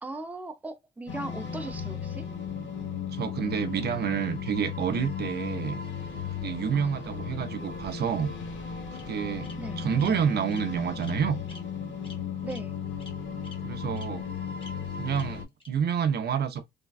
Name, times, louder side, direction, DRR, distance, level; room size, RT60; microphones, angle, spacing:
voice 1, 0.0-2.3 6.7-6.9 9.6-9.8 12.4-12.8, right 2 dB, 10° right, 0.5 m, -38 dB
sound 1, 1.1-15.4, left 6 dB, 70° left, 0.9 m, -36 dB
voice 2, 3.1-5.8 6.4-8.3 8.9-9.5 9.8-11.4 13.6-14.3 15.0-16.6, right 7 dB, 55° right, 0.5 m, -29 dB
Bird vocalization bird call bird song, 7.5-8.3 8.9-9.0 9.4-9.5 10.0-10.1 10.5-10.6 11.0-11.1 11.5-11.6 12.0-12.2 12.5-12.6 13.0-13.1 13.4-13.5 13.9-14.0 14.6-14.7 15.1-15.2 15.6-15.7, left 2 dB, 25° left, 1.1 m, -48 dB
3.3 x 2.2 x 2.3 m
cardioid pair, 90°, 20 cm